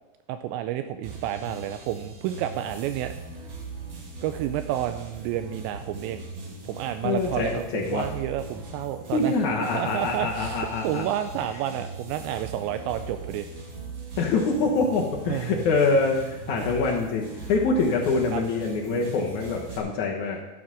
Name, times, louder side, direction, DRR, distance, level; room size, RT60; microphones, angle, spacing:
voice 1, 0.3-3.1 4.2-6.3 6.7-9.3 9.6-13.5 15.3-15.6 16.5-16.7 18.3-18.4, right 11 dB, 85° right, 9 dB, 2.8 m, -30 dB
sound 1, 1.0-19.8, right 3 dB, 70° right, 1.2 m, -40 dB
voice 2, 7.0-8.1 9.1-11.1 14.2-20.4, left 3 dB, 75° left, -1 dB, 1.8 m, -25 dB
13.0 x 7.0 x 6.2 m, 1.0 s
omnidirectional pair, 5.1 m